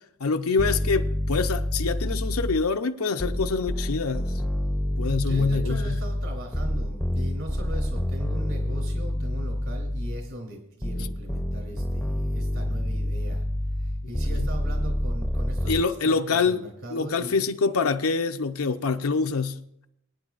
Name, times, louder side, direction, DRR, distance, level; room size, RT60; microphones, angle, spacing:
voice 1, 0.2-4.3 5.0-6.0 14.3-14.5 15.7-16.6 16.9-19.6, left 4 dB, 80° left, 0.7 m, -25 dB
sound 1, 0.6-2.7 3.2-10.3 10.8-15.8, left 1 dB, 5° left, 0.6 m, -28 dB
voice 2, 5.2-13.5 13.8-17.3, right 1 dB, 60° right, 3.2 m, -39 dB
22.0 x 9.8 x 2.5 m
head